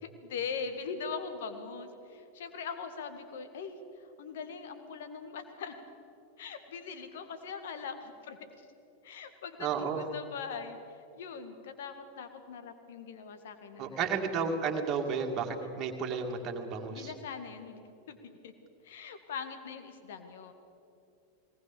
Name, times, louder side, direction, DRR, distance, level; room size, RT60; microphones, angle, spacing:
voice 1, 0.0-5.8 6.4-8.4 9.0-14.0 16.9-17.8 18.1-18.5 18.8-20.5, left 5 dB, 55° left, 8 dB, 1.9 m, -41 dB
voice 2, 9.6-10.1 13.8-17.1, right 5 dB, 30° right, 1 dB, 2.3 m, -32 dB
21.0 x 19.0 x 7.1 m, 2.7 s
figure-of-eight pair, 90°, 0 cm